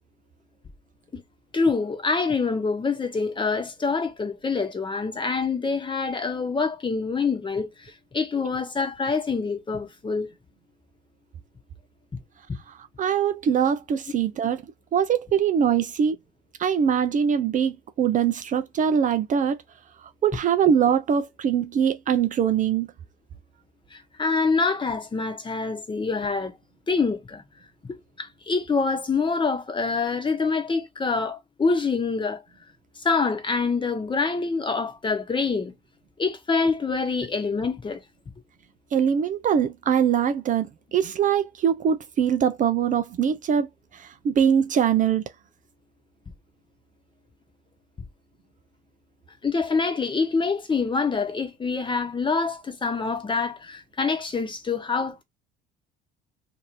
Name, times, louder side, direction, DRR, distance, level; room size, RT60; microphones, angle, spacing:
voice 1, 1.5-10.3 23.9-26.5 26.9-27.4 27.9-32.4 33.0-35.7 36.2-38.0 49.4-55.2, left 4 dB, 25° left, 1.0 m, -26 dB
voice 2, 13.0-14.6 14.9-16.2 16.6-19.6 20.2-22.9 38.9-43.7 43.9-45.2, right 8 dB, 40° right, 0.4 m, -22 dB
2.6 x 2.5 x 3.0 m
hypercardioid pair, 70°, 21 cm